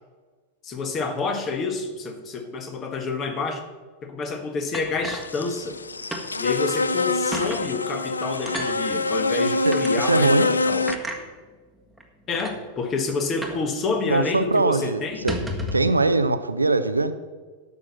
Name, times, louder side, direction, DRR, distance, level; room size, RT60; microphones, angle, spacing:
voice 1, 0.6-3.6 4.0-5.8 6.4-10.9 12.3-15.2, left 4 dB, 30° left, 7 dB, 1.5 m, -28 dB
sound 1, 4.7-5.8 6.1-6.3 6.7-6.8 7.3-7.6 8.5-8.7 9.7-9.9 10.9-11.2 12.0-12.1 12.3-12.6 13.4-13.7 13.9-14.0 14.4-14.6 15.1-15.9, equal, ahead, 1.6 m, -32 dB
sound 2, 5.2-11.0, left 3 dB, 75° left, 0.5 m, -25 dB
voice 2, 9.4-10.5 14.1-15.4 15.7-17.1, right 3 dB, 80° right, 11 dB, 0.6 m, -22 dB
12.5 x 6.1 x 7.4 m, 1.4 s
figure-of-eight pair, 90°, 0 cm